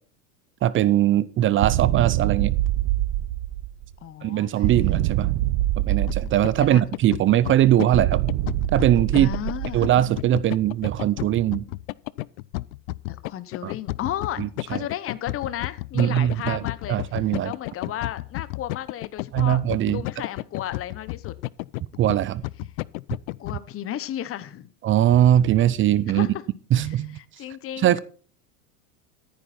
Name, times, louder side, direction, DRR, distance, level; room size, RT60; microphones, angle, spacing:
voice 1, 0.6-2.5 4.2-5.3 5.8-8.2 8.7-9.3 9.7-11.7 13.6-13.7 14.4-14.8 16.0-16.6 16.9-17.5 19.3-20.0 22.0-22.4 24.8-26.3 26.7-27.2 27.8-28.0, right 12 dB, 25° right, 0.6 m, -21 dB
sound 1, 1.6-3.9 4.6-6.9 7.9-10.2, right 14 dB, 55° right, 1.1 m, -25 dB
voice 2, 4.0-4.7 6.6-6.8 9.1-9.9 13.1-14.4 14.7-17.0 17.4-19.6 19.9-21.4 23.4-24.7 26.1-26.4 26.8-27.9, left 11 dB, 30° left, 1.1 m, -33 dB
sound 2, 5.8-23.6, left 21 dB, 60° left, 0.6 m, -32 dB
14.0 x 9.7 x 4.3 m
hypercardioid pair, 105°, 47 cm